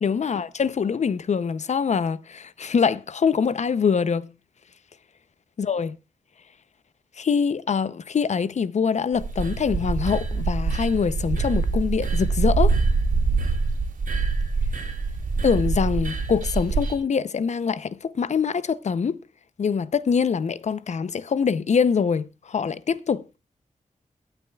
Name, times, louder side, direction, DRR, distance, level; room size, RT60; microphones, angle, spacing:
voice 1, 0.0-4.3 5.6-6.0 7.2-12.8 15.4-19.2 19.6-23.2, left 6 dB, 60° left, 0.6 m, -24 dB
sound 1, 9.2-16.9, right 4 dB, 90° right, 2.6 m, -24 dB
23.0 x 8.9 x 2.3 m
wide cardioid pair, 130°, 13 cm